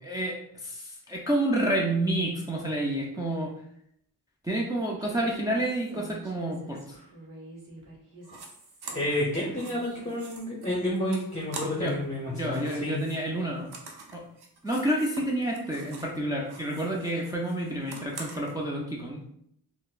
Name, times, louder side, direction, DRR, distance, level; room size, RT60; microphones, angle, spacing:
voice 1, 0.0-0.3 0.6-3.5 4.4-6.8 11.8-12.0 12.3-13.7 14.1-14.2 14.6-19.3, right 1 dB, 10° right, -3 dB, 0.5 m, -29 dB
Human voice, 5.0-10.2, equal, 50° right, 1.1 m, -47 dB
sound 1, 8.2-8.5 8.8-12.0 12.3-16.2 16.4-18.5, right 3 dB, 70° right, 0.7 m, -45 dB
voice 2, 8.9-13.0, left 1 dB, 20° left, -4 dB, 0.8 m, -30 dB
4.0 x 2.1 x 2.4 m, 0.72 s
cardioid pair, 55°, 40 cm